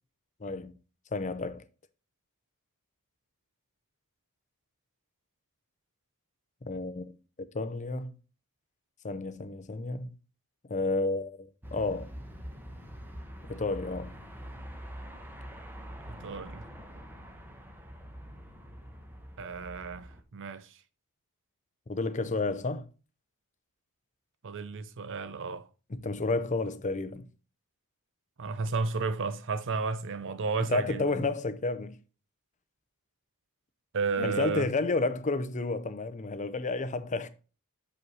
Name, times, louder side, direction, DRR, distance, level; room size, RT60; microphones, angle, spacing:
voice 1, 0.4-0.7 1.1-1.7 6.6-7.2 7.5-8.1 9.0-10.1 10.6-12.1 13.5-14.1 21.9-22.9 25.9-27.3 30.7-32.0 34.2-37.3, left 3 dB, 35° left, 0.6 m, -31 dB
sound 1, 11.6-20.2, equal, 10° right, 1.0 m, -45 dB
voice 2, 16.1-16.7 19.4-20.8 24.4-25.7 28.4-31.2 33.9-34.7, right 4 dB, 60° right, 0.6 m, -33 dB
6.3 x 5.4 x 5.5 m
head